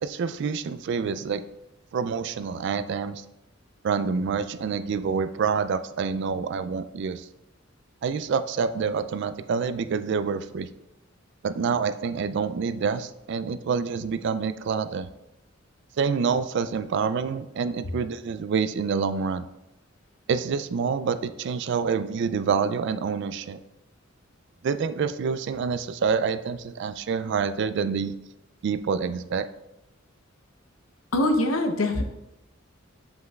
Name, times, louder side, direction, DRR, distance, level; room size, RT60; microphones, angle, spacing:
voice 1, 0.0-1.4 1.9-3.2 3.8-7.3 8.0-10.7 11.4-15.1 16.0-19.5 20.3-23.6 24.6-28.1 28.6-29.5, right 5 dB, 60° right, 12 dB, 0.3 m, -27 dB
voice 2, 31.1-32.0, left 1 dB, 90° left, 6 dB, 0.7 m, -23 dB
7.9 x 5.3 x 2.3 m, 0.90 s
head